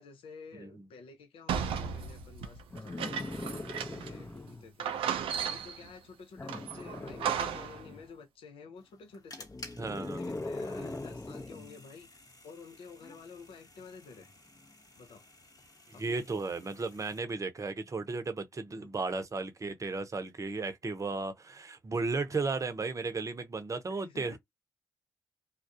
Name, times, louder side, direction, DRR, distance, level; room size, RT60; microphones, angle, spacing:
voice 1, 0.0-9.5 10.0-14.3 15.0-15.2 15.9-16.4 23.9-24.4, left 5 dB, 80° left, 0.7 m, -51 dB
sound 1, 1.5-4.2 4.5-4.6 4.8-5.9 6.5-7.8, right 8 dB, 85° right, 0.4 m, -35 dB
sound 2, 2.7-4.7 6.4-8.1 9.4-11.7 13.0-13.1, left 2 dB, 25° left, 0.7 m, -41 dB
sound 3, 8.8-17.2, left 2 dB, 45° left, 1.0 m, -54 dB
voice 2, 9.8-10.2 10.6-10.9 15.9-24.4, right 3 dB, 35° right, 0.7 m, -35 dB
2.4 x 2.0 x 2.6 m
supercardioid pair, 50°, 9 cm